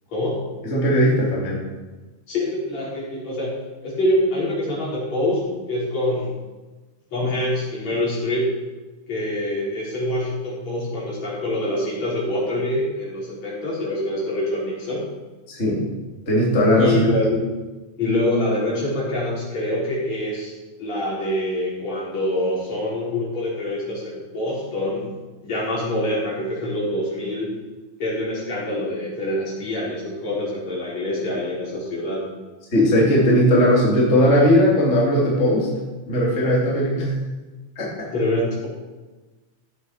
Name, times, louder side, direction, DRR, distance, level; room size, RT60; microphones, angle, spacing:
voice 1, 0.1-0.4 2.3-3.5 3.8-5.4 5.7-6.3 7.1-8.5 9.1-15.1 16.8-17.4 18.0-20.5 20.8-25.1 25.4-27.5 28.0-32.2 38.1-38.7, left 1 dB, 55° left, -7 dB, 5.8 m, -25 dB
voice 2, 0.7-1.7 15.5-15.9 16.3-17.0 32.7-35.7 36.1-37.2 37.8-38.1, equal, 20° left, -5 dB, 2.8 m, -18 dB
15.5 x 7.8 x 5.6 m, 1.2 s
omnidirectional pair, 3.7 m